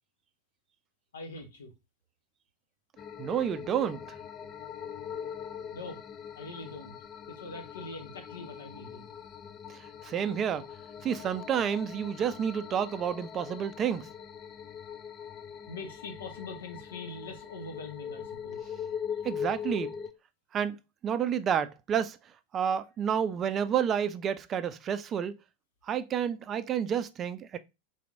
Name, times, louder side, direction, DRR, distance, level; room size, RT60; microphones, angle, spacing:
voice 1, 1.1-1.7 5.7-6.0 6.4-6.9 7.3-9.1 15.7-18.7, left 3 dB, 65° left, 1.2 m, -43 dB
sound 1, 3.0-20.1, left 8 dB, 30° left, 0.5 m, -41 dB
voice 2, 3.2-4.0 9.7-10.7 11.0-14.1 19.2-19.9 20.5-20.8 21.0-22.2 22.5-25.3 25.9-27.6, right 8 dB, 25° right, 0.4 m, -30 dB
4.0 x 3.0 x 3.8 m
figure-of-eight pair, 90°, 0 cm